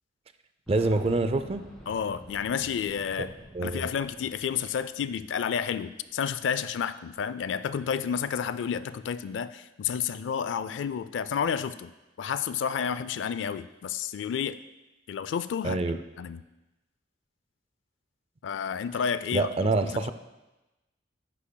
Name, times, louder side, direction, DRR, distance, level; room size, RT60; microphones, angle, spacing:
Boom, 0.7-5.4 5.7-5.8 6.9-7.0, equal, ahead, 1.6 m, -49 dB
voice 1, 0.7-1.6 3.5-3.9 15.6-16.0 19.3-20.1, right 2 dB, 35° right, 10 dB, 0.4 m, -26 dB
voice 2, 1.9-3.3 3.6-11.9 12.2-14.6 15.1-15.8 16.2-16.4 18.4-20.1, left 7 dB, 70° left, 15 dB, 0.3 m, -30 dB
9.9 x 8.4 x 2.2 m, 1.0 s
head